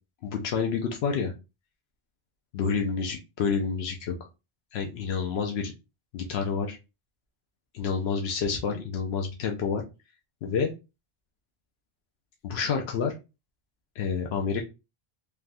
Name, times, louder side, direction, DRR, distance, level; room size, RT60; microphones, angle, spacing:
voice 1, 0.2-1.3 2.5-4.2 4.7-5.7 6.1-6.8 7.7-9.8 10.4-10.7 12.4-13.2 14.0-14.6, left 5 dB, 85° left, 2 dB, 0.8 m, -28 dB
3.3 x 2.2 x 2.5 m, 0.26 s
omnidirectional pair, 1.0 m